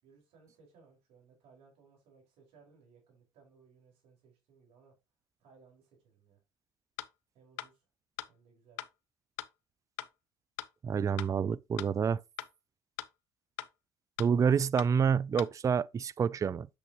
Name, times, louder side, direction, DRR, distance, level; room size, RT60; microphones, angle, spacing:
voice 1, 0.0-4.9 5.4-6.4 7.3-7.8 8.3-8.8, right 5 dB, 70° right, 5.0 m, -62 dB
sound 1, 7.0-7.1 7.6-7.7 8.2-8.3 8.8-8.9 9.4-9.5 10.0-10.1 10.6-10.7 11.2-11.3 11.8-11.9 12.4-12.5 13.0-13.1 13.6-13.7 14.2-14.3 14.8-14.9 15.4-15.5, left 15 dB, 80° left, 0.6 m, -39 dB
voice 2, 10.8-12.2 14.2-16.7, right 6 dB, 30° right, 0.4 m, -28 dB
8.4 x 6.5 x 2.9 m
supercardioid pair, 70°, 11 cm